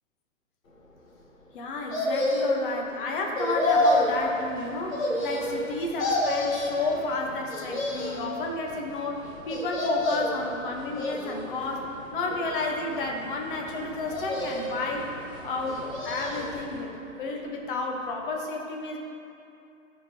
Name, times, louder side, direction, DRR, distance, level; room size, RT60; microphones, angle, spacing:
voice 1, 1.5-15.1 15.4-16.9 17.2-19.0, left 3 dB, 40° left, 1 dB, 1.0 m, -31 dB
sound 1, 1.9-2.7 3.3-4.2 4.9-5.7 6.0-6.9 7.5-8.3 9.5-10.4 10.9-11.6 12.3-13.1 14.1-14.9 15.6-16.6 16.9-17.0, left 1 dB, 75° left, 1.4 m, -28 dB
sound 2, 3.6-16.8, right 1 dB, 10° right, 1.0 m, -47 dB
12.0 x 4.5 x 2.8 m, 2.7 s
figure-of-eight pair, 125°, 41 cm